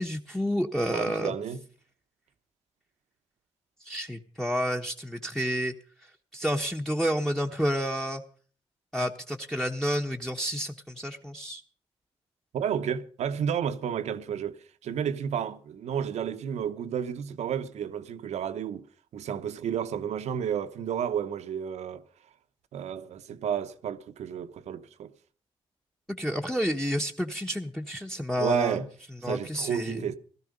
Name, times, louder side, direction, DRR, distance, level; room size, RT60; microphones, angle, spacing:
voice 1, 0.0-1.3 3.8-5.7 6.3-8.2 8.9-11.6 26.2-28.8 29.2-30.1, equal, 5° left, 1.2 m, -30 dB
voice 2, 0.9-1.6 12.5-18.9 19.1-22.0 22.7-25.1 28.4-28.9 29.2-30.1, right 8 dB, 80° right, 1.0 m, -31 dB
16.5 x 13.5 x 5.3 m
cardioid pair, 75°, 11 cm